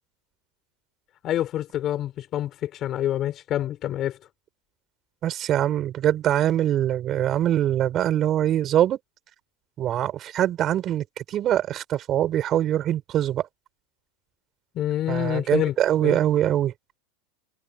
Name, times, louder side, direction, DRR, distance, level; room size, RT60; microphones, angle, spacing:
voice 1, 1.2-4.2 14.7-15.7 16.0-16.2, left 12 dB, 25° left, 4.2 m, -27 dB
voice 2, 5.2-9.0 9.8-13.5 15.1-16.7, right 11 dB, 25° right, 7.2 m, -23 dB
supercardioid pair, 180°, 0 cm